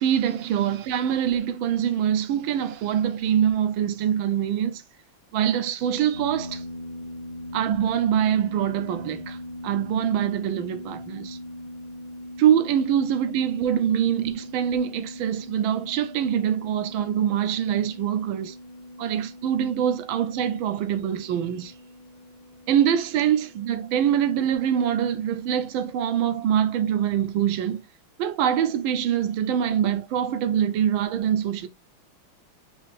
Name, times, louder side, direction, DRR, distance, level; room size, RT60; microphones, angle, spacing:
voice 1, 0.0-4.8 5.3-6.6 7.5-9.4 9.6-11.4 12.4-18.6 19.0-21.7 22.7-27.8 28.2-31.7, right 9 dB, 85° right, 1.5 m, -24 dB
sound 1, 6.1-24.5, left 1 dB, 80° left, 0.4 m, -41 dB
5.5 x 2.8 x 3.4 m
omnidirectional pair, 2.2 m